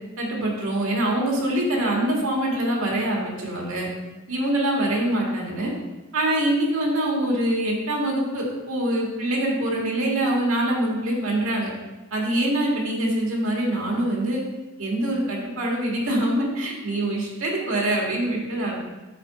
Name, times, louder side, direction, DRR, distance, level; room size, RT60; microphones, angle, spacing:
voice 1, 0.2-3.9 4.3-5.7 6.1-11.7 12.1-14.4 14.8-18.7, right 1 dB, 80° right, -2 dB, 1.8 m, -24 dB
7.6 x 4.3 x 4.1 m, 1.1 s
head